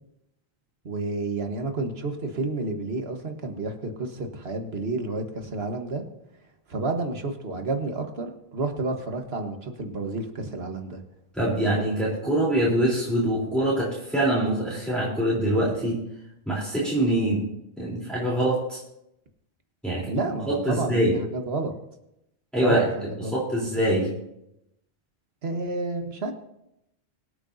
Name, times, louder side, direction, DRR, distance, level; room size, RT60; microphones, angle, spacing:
voice 1, 0.8-6.0 6.7-11.0 20.0-21.7 22.6-23.7 25.4-26.3, right 3 dB, 65° right, 5 dB, 1.6 m, -30 dB
voice 2, 11.3-16.0 16.5-17.4 17.8-18.8 19.8-20.1 20.5-21.1 22.5-22.9 23.3-24.1, right 1 dB, ahead, -8 dB, 3.5 m, -24 dB
24.5 x 8.7 x 2.7 m, 0.83 s
omnidirectional pair, 1.1 m